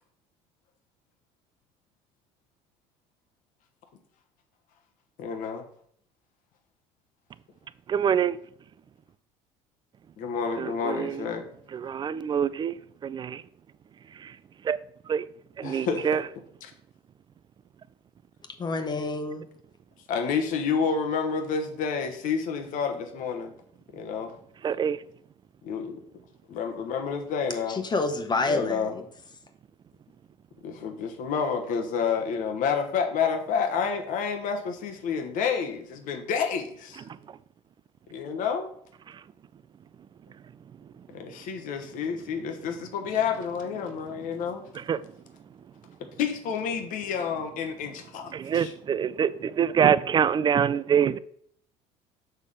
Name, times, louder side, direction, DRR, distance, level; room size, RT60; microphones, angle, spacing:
voice 1, 5.2-5.6 10.2-11.4 15.6-16.2 16.6-16.7 20.1-23.5 23.9-24.3 25.6-26.0 26.5-27.8 28.5-28.9 30.6-37.1 38.1-38.7 41.1-44.6 46.0-48.7, left 6 dB, 60° left, 1.2 m, -29 dB
voice 2, 7.9-8.4 10.6-11.3 11.7-13.4 14.2-14.3 14.6-14.8 15.1-15.3 15.6-16.2 24.6-25.0 44.9-45.0 48.3-51.2, right 8 dB, 30° right, 0.3 m, -25 dB
voice 3, 18.6-19.4 27.7-29.0, left 3 dB, 30° left, 1.1 m, -28 dB
6.6 x 3.5 x 5.4 m
supercardioid pair, 80°, 15 cm